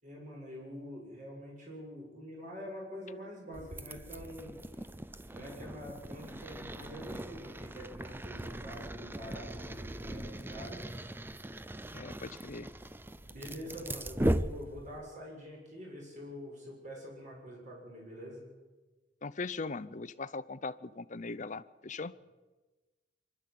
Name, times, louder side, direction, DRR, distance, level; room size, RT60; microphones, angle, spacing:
voice 1, 0.0-4.6 5.3-10.8 13.2-18.5, equal, 45° right, -2 dB, 6.8 m, -45 dB
sound 1, 3.5-15.1, right 1 dB, 10° right, 0.5 m, -39 dB
voice 2, 11.9-12.7 19.2-22.1, left 3 dB, 40° left, 15 dB, 0.7 m, -40 dB
25.0 x 12.5 x 8.4 m, 1.2 s
head